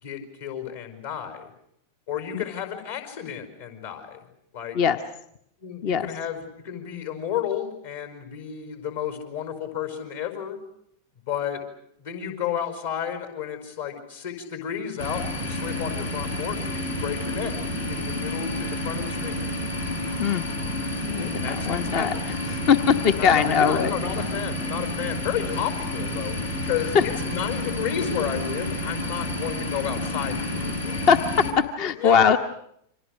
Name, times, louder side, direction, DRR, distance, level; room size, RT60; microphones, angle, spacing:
voice 1, 0.0-1.5 2.1-4.2 4.5-4.8 5.6-10.6 11.3-11.6 12.0-17.5 17.9-19.4 21.4-22.3 23.2-26.4 26.6-31.0 31.8-32.3, left 9 dB, 60° left, 7 dB, 5.1 m, -32 dB
sound 1, 15.0-31.5, left 1 dB, 80° left, 5.2 m, -30 dB
voice 2, 21.0-22.1 22.7-23.9 26.9-27.0 30.9-31.2 31.6-32.4, left 7 dB, 40° left, 8 dB, 1.0 m, -21 dB
29.5 x 25.5 x 6.6 m, 0.72 s
figure-of-eight pair, 90°, 0 cm